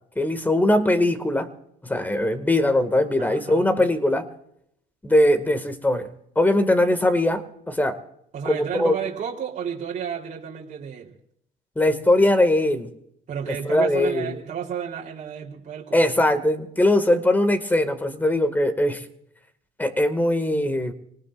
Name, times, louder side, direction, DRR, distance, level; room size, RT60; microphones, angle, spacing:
voice 1, 0.2-1.5 1.8-4.2 5.0-6.1 6.4-8.0 8.5-8.9 11.8-12.9 13.7-14.3 15.9-19.0 19.8-20.9, left 1 dB, 10° left, 9 dB, 2.1 m, -21 dB
voice 2, 3.2-3.9 8.3-11.1 13.3-16.0, right 8 dB, 45° right, -2 dB, 3.7 m, -32 dB
26.5 x 19.0 x 2.6 m, 0.72 s
cardioid pair, 110°, 17 cm